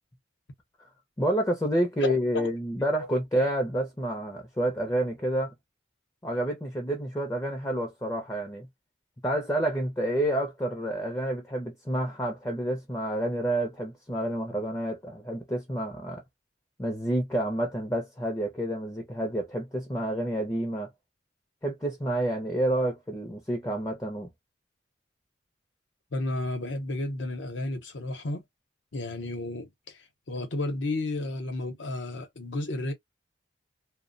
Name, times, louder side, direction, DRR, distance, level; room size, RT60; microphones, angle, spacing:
voice 1, 1.2-5.5 6.2-8.7 9.2-16.2 16.8-20.9 21.6-24.3, right 1 dB, 15° left, 0.5 m, -29 dB
voice 2, 2.0-2.5 26.1-28.4 28.9-32.9, left 2 dB, 75° left, 0.8 m, -32 dB
2.6 x 2.1 x 2.5 m
head